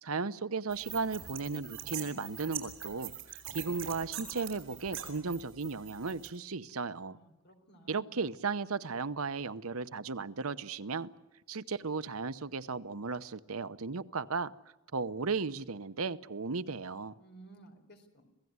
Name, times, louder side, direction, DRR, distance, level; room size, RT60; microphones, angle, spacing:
voice 1, 0.0-7.2 7.9-11.1 11.5-14.5 14.9-17.1, right 4 dB, 85° right, 13 dB, 0.9 m, -35 dB
sound 1, 0.7-6.3, right 10 dB, 65° right, 6.7 m, -43 dB
voice 2, 7.1-8.1 17.2-18.3, right 2 dB, 50° left, 5 dB, 4.3 m, -56 dB
27.0 x 17.0 x 9.6 m, 1.0 s
head